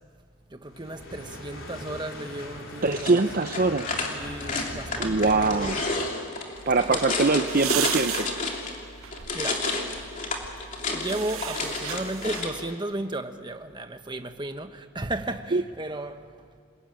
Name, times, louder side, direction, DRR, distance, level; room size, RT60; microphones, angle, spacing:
voice 1, 0.5-3.1 4.0-5.7 6.9-7.2 9.3-9.7 10.9-16.3, right 1 dB, 20° right, 1.2 m, -34 dB
sound 1, 0.7-5.9, left 1 dB, 60° left, 4.3 m, -40 dB
voice 2, 2.8-3.9 5.0-5.8 6.7-8.3 15.5-15.6, right 3 dB, 40° right, 0.6 m, -23 dB
sound 2, 2.9-8.8 9.1-12.6, left 3 dB, 35° left, 3.0 m, -31 dB
sound 3, 6.5-12.7, right 10 dB, 70° right, 0.9 m, -36 dB
28.0 x 21.0 x 8.9 m
head